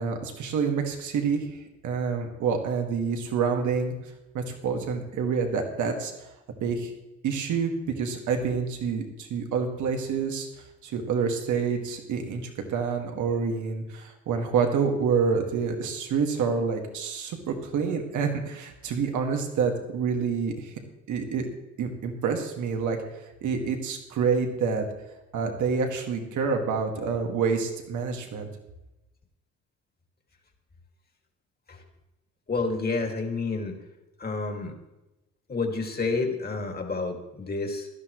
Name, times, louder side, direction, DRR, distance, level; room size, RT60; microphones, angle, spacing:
voice 1, 0.0-3.9 4.3-6.1 6.6-6.9 7.2-10.5 10.8-20.7 21.1-21.5 21.8-23.0 23.4-24.8 25.3-28.5, right 5 dB, 75° right, 4 dB, 2.0 m, -27 dB
voice 2, 32.5-33.8 34.2-34.7 35.5-37.9, left 3 dB, 30° left, 3 dB, 2.4 m, -29 dB
17.0 x 12.0 x 3.2 m, 0.98 s
cardioid pair, 90°, 30 cm